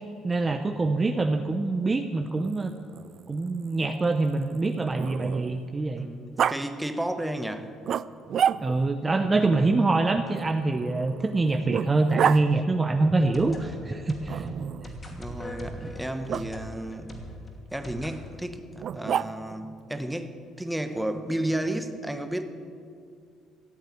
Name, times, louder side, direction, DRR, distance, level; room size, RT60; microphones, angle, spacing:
voice 1, 0.2-2.8 3.3-6.1 8.6-14.5 15.8-15.9, right 3 dB, 25° right, 6 dB, 0.7 m, -25 dB
Growling, 2.3-5.7 6.4-6.6 7.9-9.0 10.3-12.4 14.3-15.0 16.3-16.4 18.8-19.6, right 9 dB, 55° right, 0.4 m, -30 dB
voice 2, 6.0-7.7 15.2-17.1 17.7-22.5, right 1 dB, 5° right, 7 dB, 1.1 m, -32 dB
sound 1, 13.0-18.2, equal, 30° left, 2.7 m, -41 dB
14.5 x 8.0 x 9.4 m, 2.3 s
cardioid pair, 95°, 0 cm